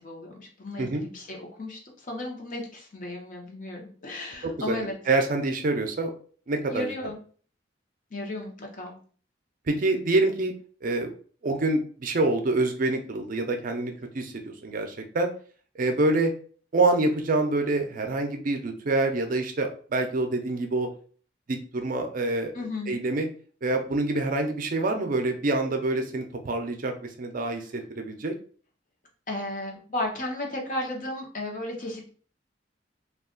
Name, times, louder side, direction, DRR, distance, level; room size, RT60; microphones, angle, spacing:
voice 1, 0.0-5.0 6.7-7.2 8.1-9.0 22.5-22.9 29.3-32.1, left 1 dB, 45° left, 0 dB, 0.8 m, -34 dB
voice 2, 4.4-4.8 5.1-6.1 6.5-6.9 9.7-10.5 10.8-11.1 11.4-15.3 15.8-16.3 16.7-20.9 21.5-22.5 22.9-23.3 23.6-28.3, right 2 dB, 50° right, 4 dB, 0.5 m, -26 dB
2.3 x 2.3 x 3.7 m, 0.43 s
head